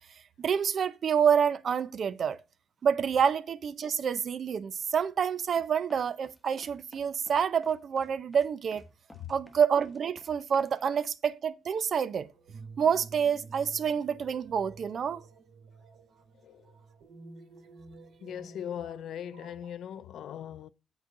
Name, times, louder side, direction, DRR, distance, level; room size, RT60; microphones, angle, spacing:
voice 1, 0.4-2.4 2.8-8.8 9.3-12.3 12.8-15.2, right 7 dB, 55° right, 0.6 m, -28 dB
sound 1, 5.6-10.7, left 1 dB, 5° left, 1.1 m, -54 dB
sound 2, 12.1-19.7, right 4 dB, 90° right, 2.5 m, -51 dB
voice 2, 18.2-20.7, left 10 dB, 70° left, 0.4 m, -39 dB
8.1 x 3.9 x 5.7 m
cardioid pair, 90°, 0 cm